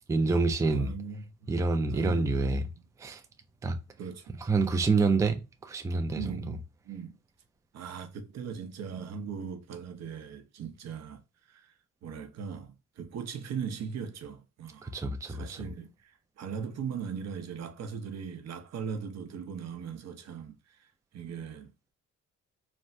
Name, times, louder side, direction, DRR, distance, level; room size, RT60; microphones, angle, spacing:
voice 1, 0.1-0.9 1.5-2.6 3.0-3.2 3.6-3.8 4.5-6.2 14.8-15.6, right 3 dB, 10° right, 0.4 m, -27 dB
voice 2, 0.6-1.5 1.9-2.5 2.8-2.9 4.0-4.4 6.1-7.1 7.7-11.2 11.5-11.7 12.0-14.9 15.3-21.7, right 6 dB, 60° right, 0.7 m, -39 dB
3.3 x 2.1 x 2.6 m
cardioid pair, 90°, 30 cm